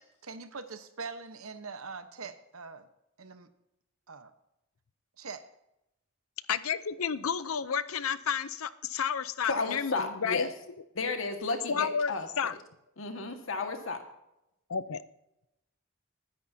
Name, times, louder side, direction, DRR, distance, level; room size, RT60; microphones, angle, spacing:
voice 1, 0.2-2.9 3.2-3.5 4.1-4.3 5.2-5.4, right 4 dB, 90° right, 9 dB, 1.1 m, -42 dB
voice 2, 6.5-10.5 11.7-12.5 14.7-15.0, left 7 dB, 90° left, 15 dB, 0.6 m, -31 dB
voice 3, 9.5-10.5 11.0-12.3 13.0-14.0, left 3 dB, 70° left, 5 dB, 1.7 m, -33 dB
21.5 x 10.0 x 2.8 m, 0.88 s
head